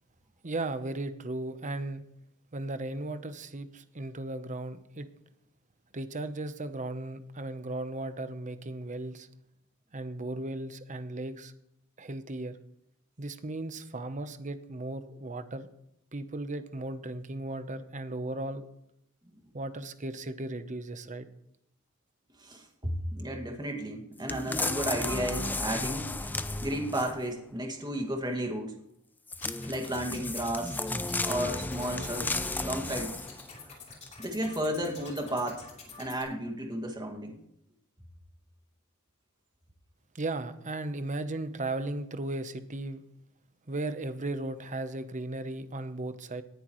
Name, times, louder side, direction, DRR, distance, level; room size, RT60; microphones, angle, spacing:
voice 1, 0.4-2.0 2.5-5.1 5.9-9.3 9.9-11.5 12.0-12.6 13.2-15.7 16.1-18.7 19.5-21.3 40.1-43.0 43.7-46.4, right 2 dB, 35° right, 10 dB, 0.9 m, -36 dB
voice 2, 22.4-26.1 26.6-28.7 29.6-30.8 31.2-33.2 34.2-35.7 36.0-37.4, right 1 dB, 20° right, 3 dB, 2.1 m, -33 dB
sound 1, 24.3-27.3 29.3-33.5 34.0-34.1, left 2 dB, 10° left, 0.5 m, -34 dB
sound 2, 29.3-36.2, left 4 dB, 30° left, 3.4 m, -48 dB
19.0 x 10.5 x 3.1 m, 0.78 s
head